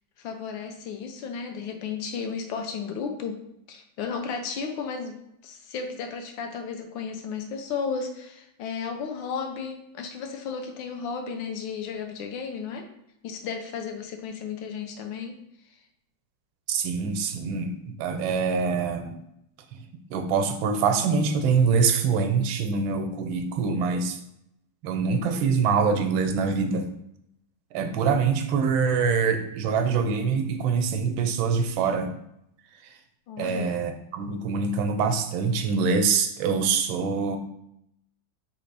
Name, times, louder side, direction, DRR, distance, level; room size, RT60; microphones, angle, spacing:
voice 1, 0.2-3.4 3.7-12.8 13.2-15.3 33.3-33.8, left 6 dB, 75° left, 5 dB, 1.4 m, -34 dB
voice 2, 16.7-19.2 20.1-24.2 24.8-26.9 27.7-32.2 32.8-32.9 33.4-37.4, right 5 dB, 90° right, 7 dB, 1.4 m, -24 dB
4.0 x 3.0 x 4.6 m, 0.78 s
omnidirectional pair, 2.1 m